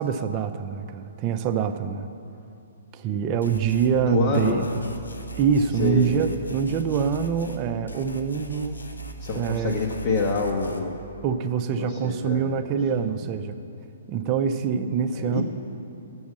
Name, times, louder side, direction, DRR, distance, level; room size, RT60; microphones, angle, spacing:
voice 1, 0.0-2.1 2.9-4.6 5.4-8.8 9.3-9.7 11.2-13.6 14.1-15.4, right 7 dB, 30° right, 8 dB, 0.5 m, -25 dB
sound 1, 3.4-3.9 4.3-7.6 7.9-10.8, right 1 dB, 85° left, 0.7 m, -40 dB
voice 2, 4.1-4.7 5.8-6.1 9.2-11.0 11.7-12.5 13.0-13.3 15.1-15.4, left 4 dB, 40° left, -2 dB, 0.8 m, -27 dB
7.1 x 6.2 x 7.2 m, 2.7 s
figure-of-eight pair, 130°, 0 cm